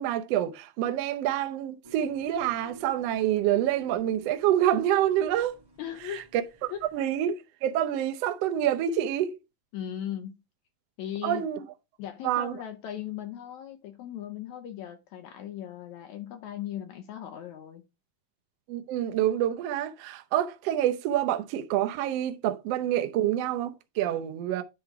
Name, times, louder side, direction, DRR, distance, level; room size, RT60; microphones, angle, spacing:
voice 1, 0.0-5.5 6.9-7.3 7.6-9.3 11.2-11.6 12.2-12.5 18.7-24.6, right 11 dB, 75° right, 1.4 m, -27 dB
sound 1, 1.8-7.0, right 3 dB, 30° right, 0.4 m, -50 dB
voice 2, 5.8-6.3 6.7-6.8 9.7-10.4 11.0-11.5 12.0-17.8, left 10 dB, 75° left, 1.8 m, -38 dB
9.9 x 3.8 x 4.7 m
omnidirectional pair, 3.9 m